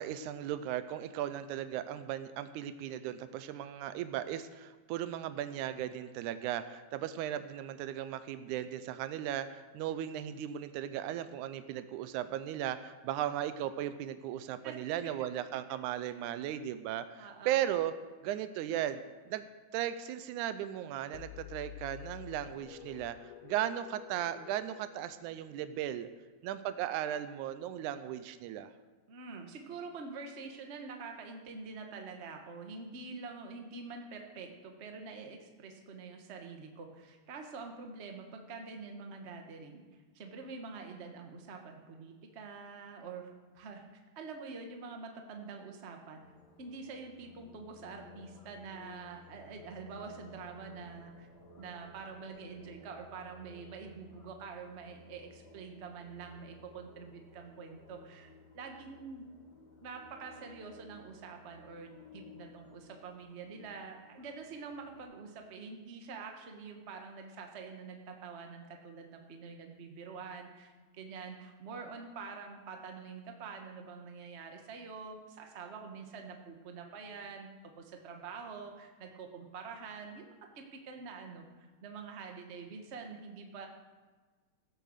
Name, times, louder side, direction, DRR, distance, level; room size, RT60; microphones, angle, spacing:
voice 1, 0.0-17.9 18.2-19.0 19.3-19.5 19.7-23.2 23.4-26.1 26.4-28.7, right 11 dB, 90° right, 11 dB, 2.1 m, -36 dB
voice 2, 17.2-17.5 29.1-39.8 40.1-43.9 44.1-46.2 46.6-51.3 51.6-59.3 59.8-80.2 80.5-83.7, right 4 dB, 55° right, 3 dB, 0.7 m, -46 dB
sound 1, 21.1-25.9, left 13 dB, 80° left, 1.8 m, -50 dB
sound 2, 46.2-65.0, left 3 dB, 40° left, 2.2 m, -57 dB
15.5 x 6.8 x 6.5 m, 1.3 s
omnidirectional pair, 3.4 m